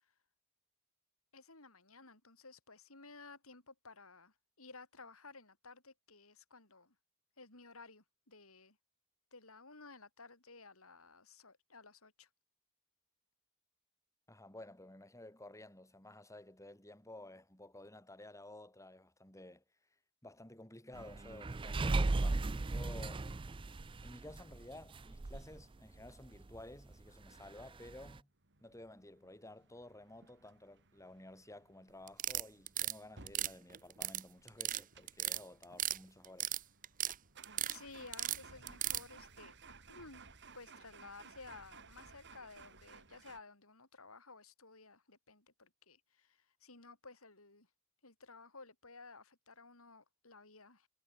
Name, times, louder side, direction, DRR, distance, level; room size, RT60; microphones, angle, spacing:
voice 1, 1.3-6.9 7.4-8.8 9.3-12.3 37.7-39.5 39.9-40.2 40.5-47.7 48.0-50.9, left 3 dB, 75° left, 7.0 m, -55 dB
voice 2, 14.3-19.9 20.2-23.5 24.0-28.3 28.6-36.6, left 1 dB, 15° left, 7.5 m, -54 dB
sound 1, 20.9-25.6 26.0-26.1 26.3-26.6 26.9-27.0 27.9-28.2, right 2 dB, 25° right, 0.5 m, -36 dB
sound 2, 28.4-43.4, right 4 dB, 55° right, 6.9 m, -59 dB
sound 3, 32.1-32.9 33.3-34.2 34.5-34.8 35.1-36.0 36.2-37.1 37.4-37.8 38.1-39.0, right 12 dB, 40° right, 0.9 m, -36 dB
head